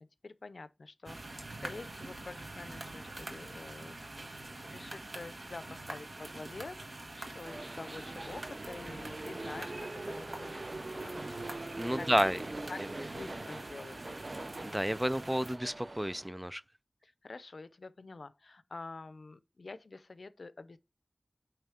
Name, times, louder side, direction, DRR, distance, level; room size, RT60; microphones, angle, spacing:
voice 1, 0.2-4.1 4.6-11.2 12.0-12.4 12.7-14.0 17.0-20.8, left 3 dB, 85° left, 0.6 m, -47 dB
sound 1, 1.0-15.6, right 2 dB, 65° right, 1.3 m, -45 dB
sound 2, 7.4-16.3, right 2 dB, 45° right, 0.7 m, -43 dB
voice 2, 11.8-12.4 14.6-16.6, equal, 10° right, 0.3 m, -30 dB
9.0 x 3.2 x 5.0 m
wide cardioid pair, 65°, 0 cm